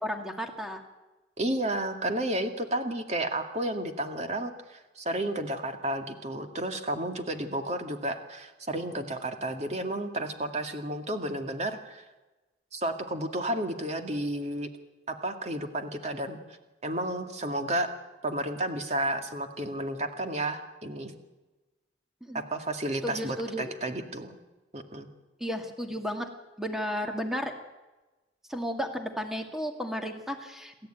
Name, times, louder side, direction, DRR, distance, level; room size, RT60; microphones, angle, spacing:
voice 1, 0.0-0.8 22.2-22.4 23.0-23.7 25.4-26.3 26.6-27.5 28.5-30.9, equal, ahead, 4 dB, 2.1 m, -33 dB
voice 2, 1.4-12.0 12.7-14.7 15.1-16.4 16.8-17.9 18.2-21.1 22.3-24.4 24.7-25.1, right 1 dB, 40° right, 6 dB, 2.2 m, -32 dB
27.5 x 14.0 x 9.1 m, 1.1 s
head